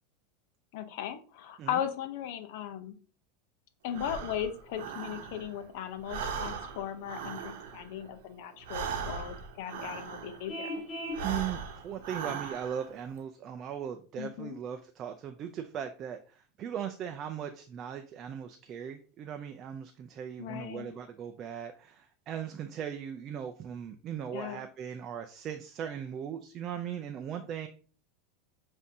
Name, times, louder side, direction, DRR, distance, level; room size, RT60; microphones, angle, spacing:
voice 1, 0.7-2.9 3.8-10.7 14.2-14.6 20.4-21.0 24.3-24.6, left 10 dB, 65° left, 9 dB, 0.7 m, -37 dB
Breathing, 3.9-5.7 6.0-10.6 11.0-13.0, right 6 dB, 75° right, 0.8 m, -39 dB
Vehicle horn car horn honking, 10.5-11.3, equal, 20° left, 1.9 m, -37 dB
voice 2, 11.2-27.7, right 9 dB, 35° right, 6 dB, 0.4 m, -38 dB
7.1 x 2.7 x 2.7 m, 0.38 s
supercardioid pair, 145°, 0 cm